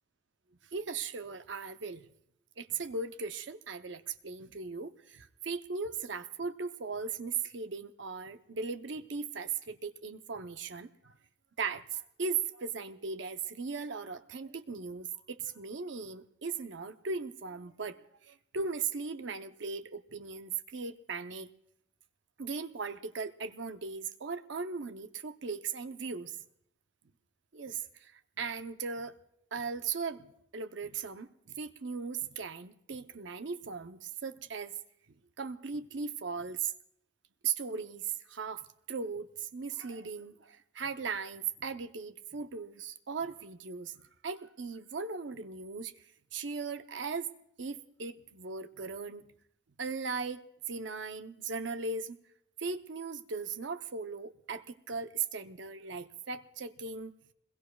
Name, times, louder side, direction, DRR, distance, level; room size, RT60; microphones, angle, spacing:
voice 1, 0.7-2.1 2.6-11.2 11.6-21.5 22.4-26.4 27.5-29.2 29.5-34.7 35.4-36.7 37.4-45.9 46.3-47.3 47.6-49.3 49.8-52.2 52.6-57.1, right 5 dB, 85° right, 9 dB, 0.7 m, -38 dB
26.5 x 21.5 x 2.3 m, 0.73 s
head